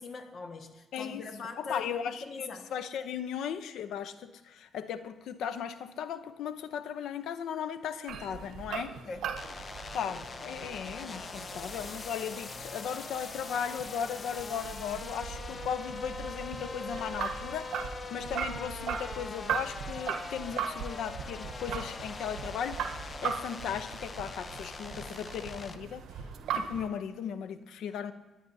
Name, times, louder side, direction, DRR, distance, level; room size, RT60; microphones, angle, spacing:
voice 1, 0.0-1.9 2.2-2.6 9.0-9.2, left 4 dB, 55° left, 1.5 m, -41 dB
voice 2, 0.9-1.2 1.6-9.0 9.9-26.2 26.5-28.1, left 8 dB, 80° left, 0.7 m, -37 dB
sound 1, 8.1-26.9, right 7 dB, 75° right, 0.9 m, -39 dB
sound 2, 9.4-25.8, left 4 dB, 40° left, 0.7 m, -43 dB
29.0 x 10.0 x 2.7 m
cardioid pair, 90°, 0 cm